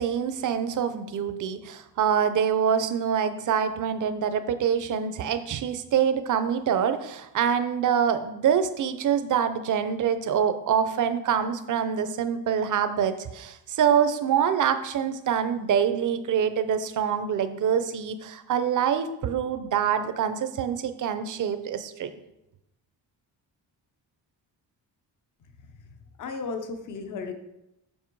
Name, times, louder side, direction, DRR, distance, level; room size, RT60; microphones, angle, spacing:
voice 1, 0.0-22.1, right 8 dB, 50° right, 10 dB, 0.7 m, -25 dB
voice 2, 26.2-27.3, left 4 dB, 50° left, 7 dB, 0.8 m, -34 dB
7.3 x 6.2 x 4.6 m, 0.88 s
wide cardioid pair, 180°, 40 cm